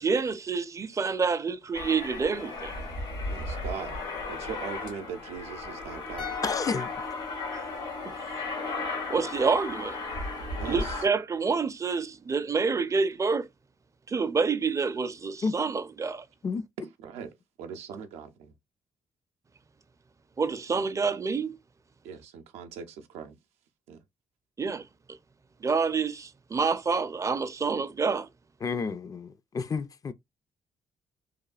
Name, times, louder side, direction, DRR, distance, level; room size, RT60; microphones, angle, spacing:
voice 1, 0.0-2.7 9.1-10.0 10.6-13.5 14.1-16.2 20.4-21.6 24.6-25.2 25.6-28.3, right 5 dB, 30° right, 0.4 m, -28 dB
Aircraft, 1.7-11.1, left 3 dB, 90° left, 1.5 m, -35 dB
voice 2, 3.3-4.0 4.3-6.3 10.6-11.0 16.8-17.3 17.6-18.5 22.0-23.4 23.9-24.0, right 7 dB, 85° right, 0.5 m, -40 dB
sound 1, 6.2-9.4 9.6-9.8, left 7 dB, 60° left, 0.9 m, -43 dB
voice 3, 6.4-6.9 15.4-15.5 16.4-16.6 28.6-29.3 29.5-30.1, left 5 dB, 35° left, 0.4 m, -30 dB
3.0 x 2.2 x 2.3 m
supercardioid pair, 60°, 11 cm